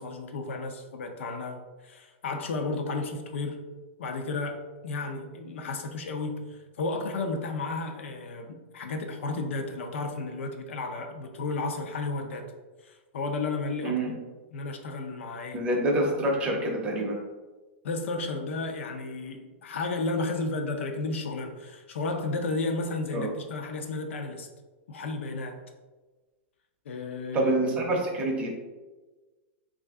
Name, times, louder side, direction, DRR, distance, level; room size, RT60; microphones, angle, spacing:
voice 1, 0.0-3.6 4.0-12.5 12.8-13.9 14.5-15.6 17.8-24.5 24.9-25.6 26.9-27.6, left 3 dB, 85° left, 4 dB, 0.6 m, -33 dB
voice 2, 15.5-17.2 23.1-23.3 27.3-28.5, right 1 dB, 15° right, 0 dB, 0.6 m, -26 dB
3.2 x 2.5 x 3.5 m, 1.2 s
supercardioid pair, 165°, 6 cm